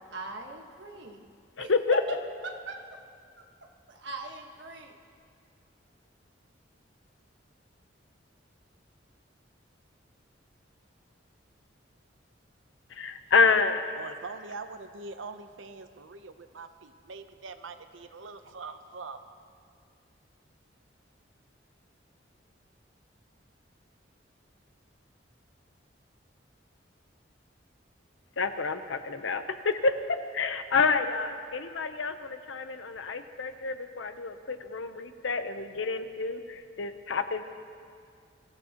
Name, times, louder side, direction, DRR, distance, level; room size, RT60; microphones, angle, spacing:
voice 1, 0.1-1.3 1.6-2.2 2.4-2.8 3.9-4.9, right 2 dB, 65° right, 2 dB, 1.4 m, -40 dB
voice 2, 1.6-2.0 12.9-14.0 28.4-37.6, left 4 dB, 85° left, 9 dB, 0.8 m, -28 dB
voice 3, 13.9-19.4, right 4 dB, 90° right, 9 dB, 0.8 m, -43 dB
23.0 x 15.0 x 3.0 m, 2.3 s
head